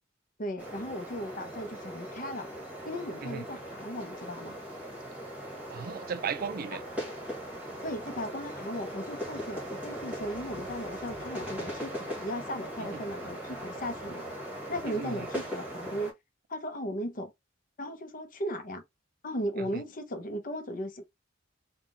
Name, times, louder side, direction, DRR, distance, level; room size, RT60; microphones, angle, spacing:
voice 1, 0.4-2.5 2.8-4.6 7.8-14.3 14.7-16.1 16.5-17.3 17.8-18.8 19.2-21.0, equal, 45° left, 0.8 m, -36 dB
sound 1, 0.6-16.1, equal, 10° right, 1.4 m, -39 dB
voice 2, 5.7-6.8 12.8-13.0 14.9-15.3 19.6-19.8, right 6 dB, 50° right, 0.4 m, -36 dB
sound 2, 9.8-12.7, left 1 dB, 70° left, 1.0 m, -51 dB
3.5 x 2.3 x 3.7 m
head